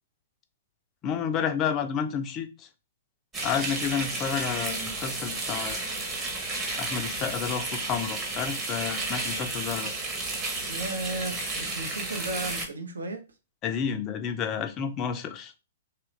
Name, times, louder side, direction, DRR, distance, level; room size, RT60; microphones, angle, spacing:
voice 1, 1.0-2.7 3.4-5.8 6.8-9.9 13.6-15.5, left 7 dB, 25° left, 0.4 m, -30 dB
sound 1, 3.3-12.7, right 2 dB, 15° right, 0.8 m, -32 dB
voice 2, 10.7-13.2, right 2 dB, 70° right, 0.7 m, -34 dB
3.0 x 2.4 x 3.1 m
figure-of-eight pair, 110°, 0 cm